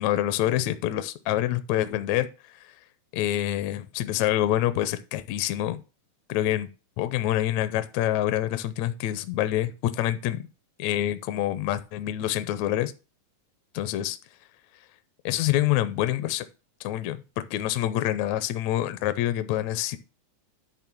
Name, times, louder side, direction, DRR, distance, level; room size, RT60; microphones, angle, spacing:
voice 1, 0.0-2.7 3.1-5.8 6.3-6.7 7.0-10.5 10.8-12.9 13.7-14.2 15.3-16.5 16.8-20.0, left 13 dB, 75° left, 12 dB, 1.8 m, -26 dB
10.5 x 3.6 x 6.0 m, 0.31 s
omnidirectional pair, 3.5 m